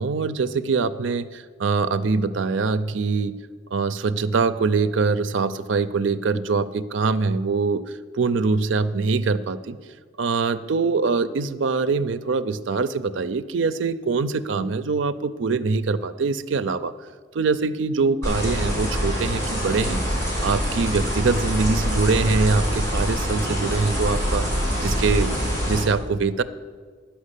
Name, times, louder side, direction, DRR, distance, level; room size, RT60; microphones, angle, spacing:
voice 1, 0.0-3.3 3.7-7.8 8.1-9.8 10.2-16.9 17.3-24.5 24.8-25.3 25.7-26.4, right 4 dB, 85° right, 11 dB, 0.5 m, -23 dB
sound 1, 18.2-25.8, equal, 15° left, 4.0 m, -25 dB
11.0 x 5.8 x 8.3 m, 1.5 s
head